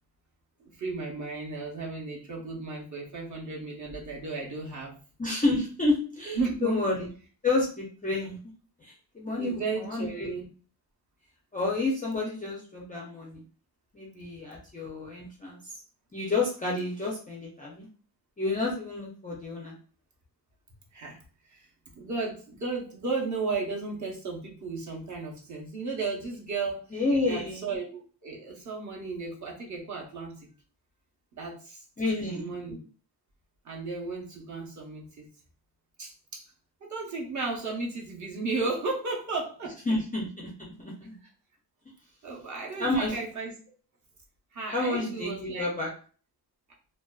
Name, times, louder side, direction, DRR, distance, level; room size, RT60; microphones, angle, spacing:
voice 1, 0.6-4.9 6.3-6.8 9.4-10.4 20.9-21.2 21.5-21.7 21.9-30.5 31.3-32.8 33.6-35.3 36.0-36.5 36.9-39.8 42.2-43.5 44.5-45.7, right 3 dB, 40° right, -2 dB, 0.7 m, -34 dB
voice 2, 5.2-7.1 7.4-8.4 8.8-10.3 11.5-13.4 13.9-15.8 16.1-17.9 18.4-19.8 26.9-27.7 32.0-32.5 39.9-41.2 42.8-43.1 44.7-45.9, left 2 dB, 20° left, -3 dB, 0.3 m, -30 dB
2.5 x 2.2 x 2.3 m, 0.41 s
wide cardioid pair, 145°, 45 cm